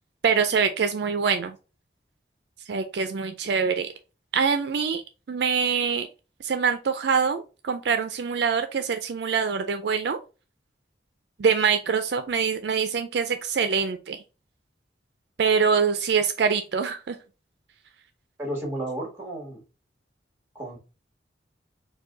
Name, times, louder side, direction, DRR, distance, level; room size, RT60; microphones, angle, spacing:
voice 1, 0.2-1.5 2.7-3.9 4.3-5.0 5.3-6.1 6.4-10.2 11.4-14.2 15.4-17.2, right 6 dB, 65° right, 8 dB, 0.4 m, -24 dB
voice 2, 18.4-19.6 20.5-20.8, right 1 dB, 15° right, 0 dB, 1.6 m, -32 dB
4.7 x 2.2 x 3.7 m, 0.32 s
head